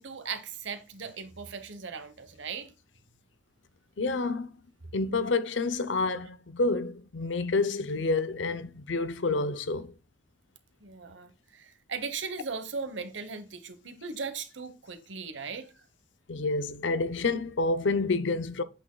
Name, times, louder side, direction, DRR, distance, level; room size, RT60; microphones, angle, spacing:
voice 1, 0.0-2.7 10.8-15.7, right 5 dB, 90° right, 1.1 m, -38 dB
voice 2, 4.0-4.5 4.9-9.9 16.3-18.6, left 3 dB, 80° left, 0.6 m, -28 dB
7.9 x 6.2 x 2.3 m
head